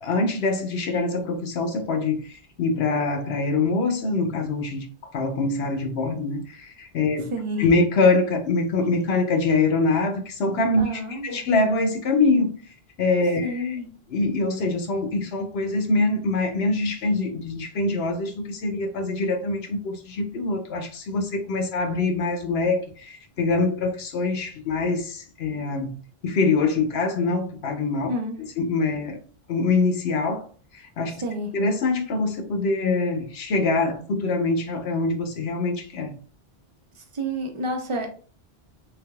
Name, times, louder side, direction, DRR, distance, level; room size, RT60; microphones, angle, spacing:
voice 1, 0.0-4.9 5.1-7.3 7.6-12.5 13.0-13.8 14.1-28.1 28.6-29.2 29.5-30.5 30.7-31.2 31.5-36.1, left 3 dB, 75° left, 1.0 m, -24 dB
voice 2, 7.3-7.7 10.8-11.4 13.4-13.9 28.1-28.4 31.2-31.5 36.9-38.1, equal, 35° right, 0.7 m, -29 dB
3.5 x 3.4 x 2.3 m
omnidirectional pair, 1.1 m